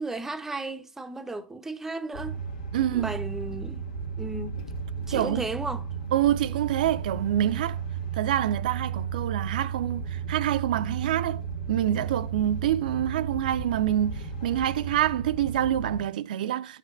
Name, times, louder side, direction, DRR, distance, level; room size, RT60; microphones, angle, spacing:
voice 1, 0.0-2.4 2.9-3.8 4.2-4.6 5.1-5.8, right 2 dB, 10° right, 0.7 m, -34 dB
sound 1, 2.1-16.0, right 6 dB, 85° left, 1.9 m, -34 dB
voice 2, 2.7-3.2 5.1-5.5 6.1-7.8 8.1-11.4 11.7-16.8, right 11 dB, 75° right, 0.6 m, -26 dB
10.0 x 6.6 x 2.4 m
hypercardioid pair, 125°, 5 cm